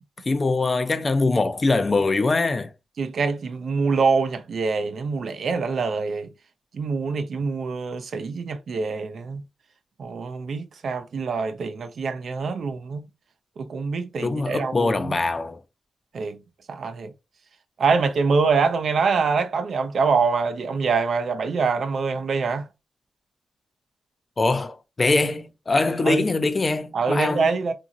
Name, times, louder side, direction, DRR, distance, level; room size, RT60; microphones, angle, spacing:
voice 1, 0.3-2.7 14.2-15.6 24.4-27.5, left 3 dB, 40° left, 0.4 m, -23 dB
voice 2, 3.0-6.3 6.7-9.4 10.0-13.1 13.6-15.2 16.1-16.4 16.7-17.1 17.8-22.7 26.0-26.2 26.9-27.7, right 4 dB, 70° right, 0.5 m, -25 dB
2.8 x 2.6 x 2.4 m
cardioid pair, 70°, 0 cm